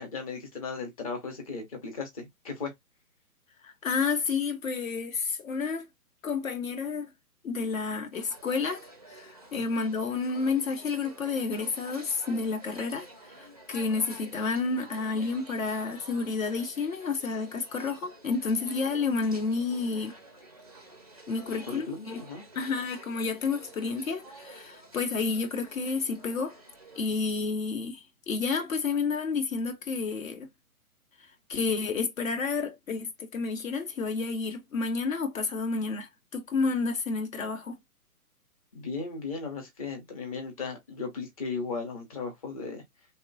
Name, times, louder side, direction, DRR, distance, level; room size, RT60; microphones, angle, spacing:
voice 1, 0.0-2.7 9.5-9.6 21.5-22.4 38.7-42.8, left 4 dB, 25° left, 0.6 m, -36 dB
voice 2, 3.6-5.9 6.2-7.1 7.4-8.8 9.1-20.1 21.3-22.2 22.5-26.6 26.9-30.5 31.2-37.8, left 4 dB, 60° left, 0.7 m, -30 dB
sound 1, 8.1-27.0, right 2 dB, 30° right, 0.4 m, -50 dB
3.1 x 2.1 x 2.5 m
figure-of-eight pair, 135°, 46 cm